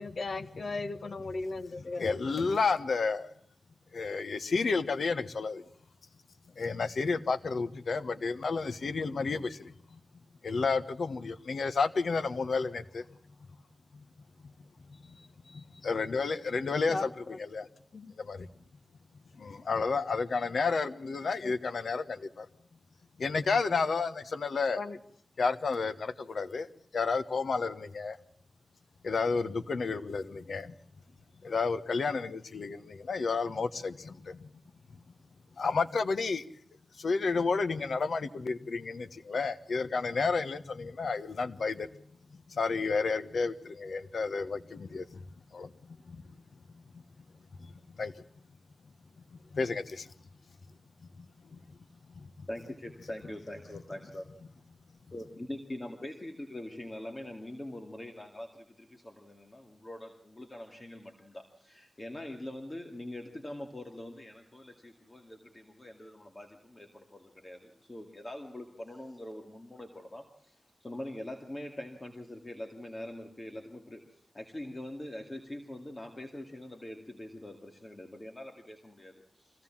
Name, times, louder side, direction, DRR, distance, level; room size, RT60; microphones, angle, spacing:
voice 1, 0.0-2.4 16.9-17.4 17.9-18.1 21.4-21.5 24.8-25.0, left 3 dB, 65° left, 9 dB, 1.6 m, -37 dB
voice 2, 2.0-3.3 3.9-5.6 6.6-9.7 10.4-13.1 15.1-15.2 15.5-17.7 18.2-18.5 19.4-22.5 23.2-24.8 25.4-28.2 29.0-30.7 31.4-34.4 35.6-36.4 37.0-41.9 42.5-45.2 45.5-45.7 46.0-46.2 48.0-48.1 49.5-50.1 51.2-51.3 51.5-51.6 52.1-52.5, left 4 dB, 80° left, 12 dB, 1.2 m, -31 dB
voice 3, 52.5-54.2 55.1-79.6, left 1 dB, 25° left, 3 dB, 2.3 m, -43 dB
25.0 x 17.0 x 7.4 m, 0.64 s
wide cardioid pair, 115°, 0 cm